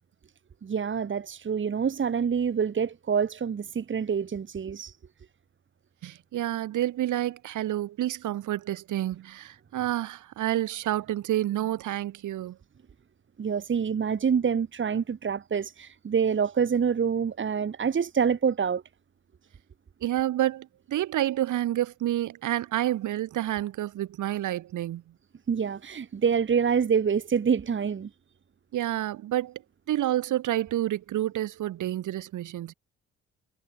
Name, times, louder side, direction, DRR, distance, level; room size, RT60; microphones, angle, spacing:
voice 1, 0.6-4.9 13.4-18.8 25.5-28.1, right 6 dB, 40° right, 2.1 m, -26 dB
voice 2, 6.0-12.6 20.0-25.0 28.7-29.6 29.9-32.7, right 13 dB, 80° right, 4.8 m, -29 dB
cardioid pair, 90°, 30 cm